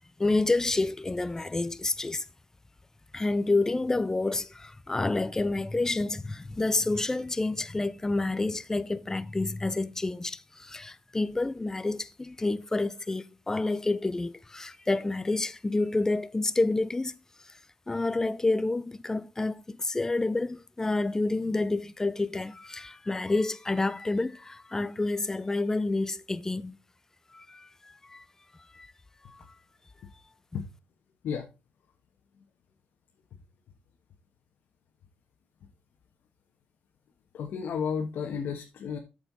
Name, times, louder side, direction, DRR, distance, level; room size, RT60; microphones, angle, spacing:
voice 1, 0.2-2.2 3.1-17.1 17.9-26.8 27.3-28.2 28.7-28.9 29.3-29.4, left 2 dB, 15° left, 0.5 m, -29 dB
voice 2, 37.3-39.0, left 6 dB, 70° left, 1.5 m, -32 dB
8.8 x 6.8 x 4.2 m
cardioid pair, 125°, 4 cm